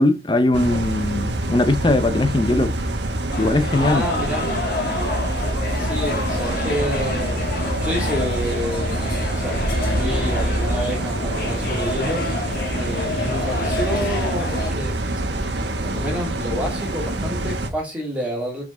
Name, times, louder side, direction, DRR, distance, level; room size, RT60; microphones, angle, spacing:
voice 1, 0.0-2.7 3.4-4.0, left 2 dB, 25° left, 0.6 m, -19 dB
sound 1, 0.5-17.7, right 1 dB, 70° right, 1.3 m, -25 dB
sound 2, 3.3-14.7, left 2 dB, 50° left, 1.5 m, -28 dB
voice 2, 3.8-4.5 5.8-9.6 9.9-12.3 12.8-15.0 15.3-18.6, equal, 5° right, 2.6 m, -29 dB
5.9 x 4.9 x 3.8 m
head